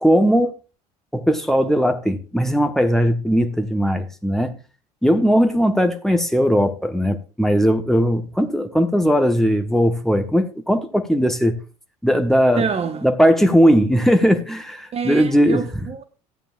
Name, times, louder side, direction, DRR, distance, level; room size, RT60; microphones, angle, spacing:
voice 1, 0.0-0.5 1.1-4.5 5.0-11.6 12.0-12.6 13.0-15.6, equal, ahead, 1.1 m, -18 dB
voice 2, 12.6-13.1 14.9-16.0, right 6 dB, 30° right, 0.9 m, -26 dB
13.5 x 9.0 x 2.5 m
figure-of-eight pair, 65°, 21 cm